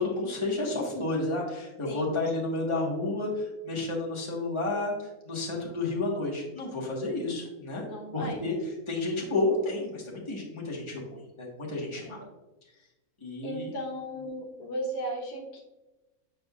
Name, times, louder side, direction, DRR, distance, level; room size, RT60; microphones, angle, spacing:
voice 1, 0.0-7.8 8.1-8.5 8.9-11.0 11.4-12.2 13.2-13.7, left 2 dB, 20° left, -3 dB, 1.3 m, -31 dB
voice 2, 1.9-2.2 7.8-8.6 12.0-12.1 13.4-15.6, equal, 75° left, 0 dB, 1.5 m, -36 dB
7.7 x 5.2 x 2.4 m, 1.0 s
omnidirectional pair, 1.6 m